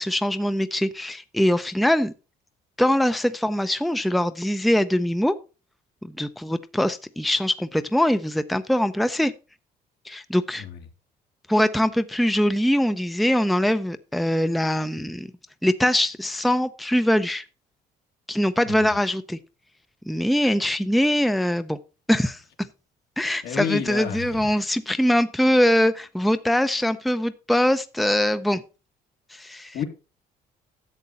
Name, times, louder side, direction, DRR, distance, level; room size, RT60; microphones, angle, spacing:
voice 1, 0.0-2.1 2.8-5.3 6.0-9.3 10.0-10.6 11.5-15.3 15.6-17.4 18.3-19.4 20.1-21.8 22.1-22.4 23.2-28.6 29.3-29.8, equal, ahead, 0.6 m, -22 dB
voice 2, 23.4-24.5 29.7-29.8, left 9 dB, 75° left, 2.3 m, -29 dB
11.0 x 7.5 x 4.1 m
cardioid pair, 110°, 17 cm